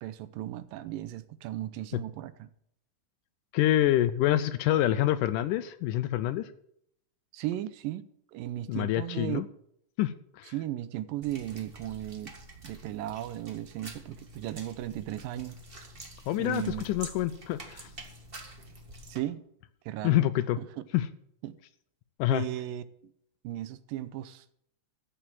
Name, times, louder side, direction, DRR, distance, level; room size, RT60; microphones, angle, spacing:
voice 1, 0.0-2.5 7.3-8.0 8.3-9.4 10.5-12.3 12.6-15.6 16.4-16.9 19.1-19.4 19.9-20.2 20.6-20.7 21.4-21.6 22.3-23.1 23.4-24.5, right 13 dB, 85° right, 2.4 m, -36 dB
voice 2, 3.5-6.5 8.7-9.5 10.0-10.5 16.3-17.9 20.0-20.6 20.9-21.1 22.2-22.4, left 13 dB, 80° left, 2.0 m, -26 dB
sound 1, 11.2-19.2, right 1 dB, 25° right, 1.2 m, -47 dB
14.0 x 6.8 x 7.5 m
omnidirectional pair, 4.0 m